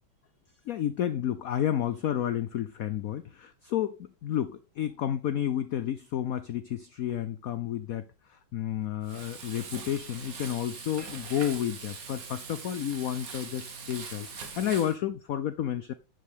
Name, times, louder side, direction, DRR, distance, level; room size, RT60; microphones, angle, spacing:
voice 1, 0.7-15.9, left 10 dB, 90° left, 0.7 m, -31 dB
Frying (food), 9.0-15.0, right 5 dB, 45° right, 1.8 m, -42 dB
9.5 x 7.0 x 3.6 m
omnidirectional pair, 2.2 m